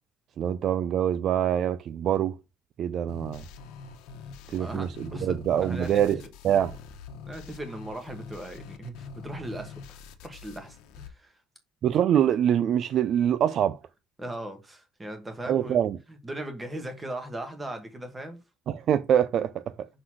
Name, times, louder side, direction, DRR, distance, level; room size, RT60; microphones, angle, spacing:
voice 1, 0.4-2.4 2.8-3.4 4.5-6.8 11.8-13.8 15.5-16.0 18.7-19.9, right 10 dB, 40° right, 0.3 m, -25 dB
sound 1, 3.1-11.1, left 5 dB, 85° left, 1.1 m, -44 dB
voice 2, 4.5-6.2 7.2-11.4 14.2-15.8 16.1-18.4, right 1 dB, 10° right, 1.2 m, -38 dB
6.0 x 3.9 x 6.1 m
cardioid pair, 170°, 0 cm